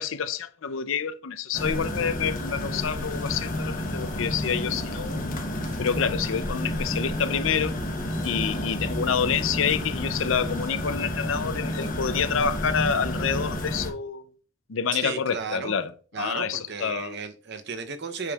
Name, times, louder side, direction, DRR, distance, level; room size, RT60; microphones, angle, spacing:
voice 1, 0.0-5.4 5.8-7.8 8.2-14.3 14.7-17.2, left 7 dB, 75° left, 0.5 m, -28 dB
sound 1, 1.5-13.9, left 1 dB, 45° left, 1.0 m, -30 dB
sound 2, 2.5-12.4, right 1 dB, 40° right, 2.1 m, -50 dB
voice 2, 14.9-15.8 16.1-18.3, right 5 dB, 55° right, 0.7 m, -34 dB
8.2 x 5.2 x 2.4 m
head